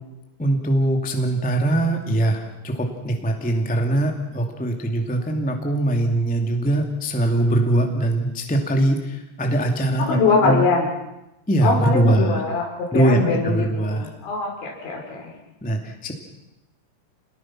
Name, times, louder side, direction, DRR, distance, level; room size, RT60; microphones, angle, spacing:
voice 1, 0.4-10.2 10.4-10.6 11.5-12.4 12.9-14.1 15.6-16.1, right 1 dB, 5° left, 3 dB, 0.6 m, -22 dB
voice 2, 10.0-10.9 11.6-12.7 12.9-15.3, left 4 dB, 80° left, 0 dB, 7.3 m, -22 dB
28.0 x 20.0 x 6.1 m, 0.93 s
omnidirectional pair, 5.2 m